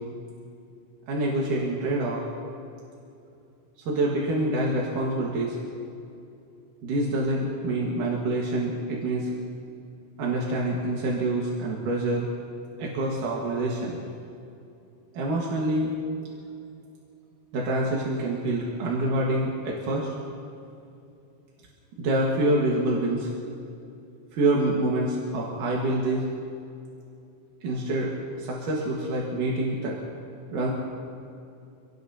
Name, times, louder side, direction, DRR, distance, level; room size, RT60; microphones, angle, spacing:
voice 1, 1.1-2.2 3.9-5.6 6.8-9.3 10.2-12.3 12.8-14.0 15.1-15.9 17.5-20.1 22.0-23.3 24.3-26.2 27.6-28.1 28.4-30.0 30.5-30.7, right 1 dB, 80° right, -3 dB, 3.2 m, -26 dB
26.0 x 18.5 x 2.8 m, 2.6 s
omnidirectional pair, 3.6 m